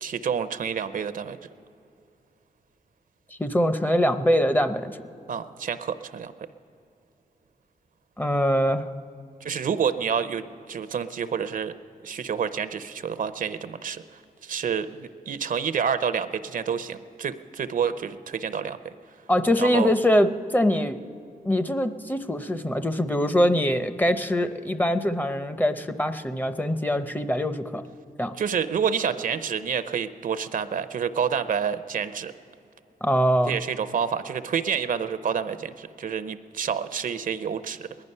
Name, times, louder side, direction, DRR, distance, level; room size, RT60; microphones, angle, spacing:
voice 1, 0.0-1.4 5.3-6.3 9.4-11.8 12.0-14.0 14.4-18.9 19.6-19.9 28.4-32.3 33.5-38.0, right 7 dB, 60° right, 12 dB, 0.5 m, -28 dB
voice 2, 3.4-4.9 8.2-8.9 19.3-21.0 21.5-27.8 28.2-28.4 33.0-33.6, equal, 10° left, 10 dB, 0.6 m, -23 dB
20.0 x 11.0 x 5.5 m, 2.7 s
wide cardioid pair, 100°, 16 cm